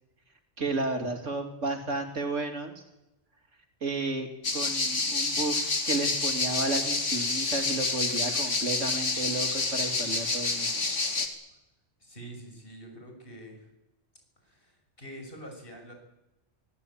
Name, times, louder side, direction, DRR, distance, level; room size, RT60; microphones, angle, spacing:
voice 1, 0.6-2.8 3.8-10.8, right 2 dB, 90° right, 5 dB, 3.1 m, -32 dB
sound 1, 4.4-11.3, left 3 dB, 90° left, 2.7 m, -28 dB
voice 2, 12.0-13.7 14.4-15.9, right 1 dB, 50° left, 3 dB, 7.0 m, -46 dB
24.5 x 16.5 x 8.8 m, 0.94 s
omnidirectional pair, 1.2 m